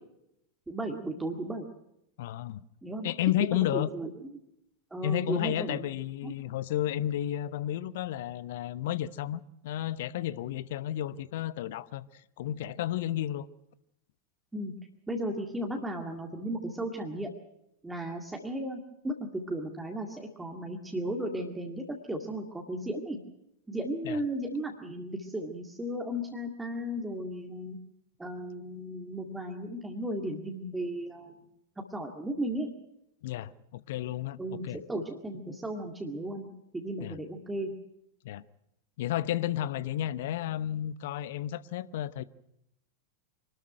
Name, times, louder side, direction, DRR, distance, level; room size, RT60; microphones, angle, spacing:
voice 1, 0.7-1.7 2.8-3.1 3.4-4.1 4.9-5.9 6.2-6.3 14.5-14.7 15.1-17.3 17.8-23.2 23.7-27.8 28.2-31.4 31.9-32.7 34.4-36.5 36.7-37.7, right 1 dB, 10° right, 2.0 m, -35 dB
voice 2, 2.2-2.6 3.0-3.9 5.0-13.5 24.0-24.2 33.2-34.8 37.0-37.2 38.2-38.4 39.0-42.2, left 12 dB, 55° left, 0.7 m, -32 dB
24.5 x 13.0 x 9.1 m
figure-of-eight pair, 90°, 0 cm